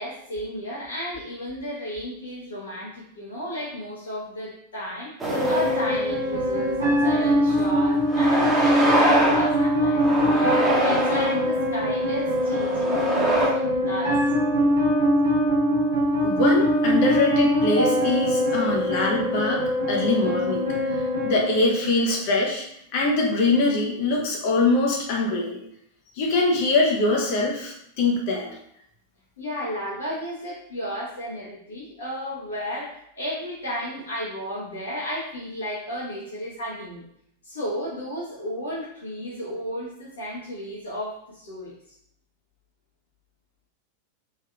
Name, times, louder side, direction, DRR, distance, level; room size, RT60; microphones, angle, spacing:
voice 1, 0.0-14.2 29.4-37.0 37.4-41.7, equal, 70° left, -7 dB, 1.0 m, -33 dB
sound 1, 5.2-5.9 6.4-6.5 7.5-7.6 8.1-9.5 10.0-11.4 12.2-13.5, right 1 dB, 10° right, 1.0 m, -24 dB
sound 2, 5.3-22.3, equal, 75° right, 1.0 m, -23 dB
voice 2, 16.2-19.6 19.9-21.0 21.2-22.6 22.9-25.6 26.2-28.5, left 2 dB, 50° left, 0 dB, 0.7 m, -23 dB
3.4 x 3.2 x 2.4 m, 0.71 s
figure-of-eight pair, 90°, 0 cm